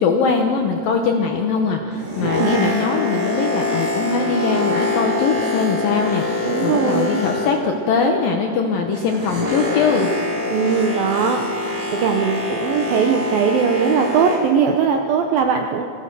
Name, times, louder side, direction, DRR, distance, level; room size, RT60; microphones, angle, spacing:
voice 1, 0.0-10.1, left 5 dB, 75° left, 3 dB, 2.1 m, -21 dB
Boat Water vehicle, 1.8-7.9 8.1-14.6 15.2-15.4, left 2 dB, 55° right, 9.1 m, -25 dB
voice 2, 2.2-2.8 6.5-7.2 10.5-15.9, right 6 dB, 80° right, 4 dB, 2.1 m, -20 dB
24.5 x 16.5 x 6.8 m, 2.5 s
omnidirectional pair, 5.3 m